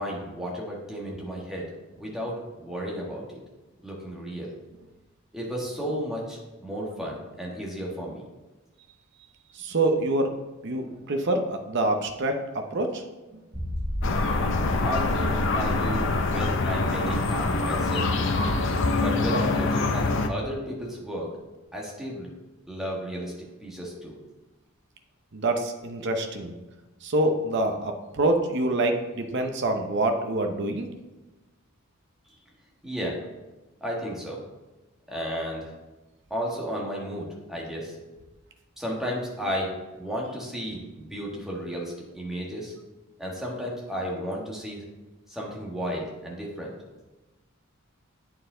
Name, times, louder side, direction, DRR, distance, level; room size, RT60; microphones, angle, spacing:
voice 1, 0.0-1.7 2.0-3.4 3.8-4.5 5.3-8.2 14.8-18.1 18.9-21.3 21.7-22.3 22.7-23.3 23.6-24.2 32.8-33.2 33.8-34.4 35.1-35.7 36.3-38.0 38.8-42.7 43.2-44.8 45.3-46.7, equal, ahead, -3 dB, 1.3 m, -33 dB
voice 2, 9.5-10.3 10.6-13.0 25.3-26.5 27.0-30.9, right 2 dB, 55° right, 5 dB, 0.7 m, -26 dB
sound 1, 13.5-19.0 19.3-19.4 19.9-20.0, equal, 30° right, 1.7 m, -33 dB
sound 2, 14.0-20.3, left 3 dB, 55° left, 0.6 m, -25 dB
8.6 x 4.7 x 3.8 m, 1.1 s
head